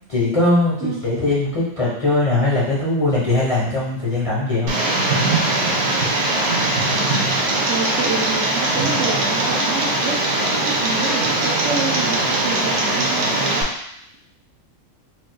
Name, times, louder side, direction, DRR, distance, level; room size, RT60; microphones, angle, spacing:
voice 1, 0.1-4.7, left 2 dB, 30° left, -8 dB, 0.7 m, -20 dB
Tick, 4.7-13.6, right 2 dB, 90° right, 1.2 m, -20 dB
voice 2, 7.6-13.6, right 5 dB, 65° right, -2 dB, 0.9 m, -28 dB
4.1 x 2.5 x 2.2 m, 0.75 s
omnidirectional pair, 1.5 m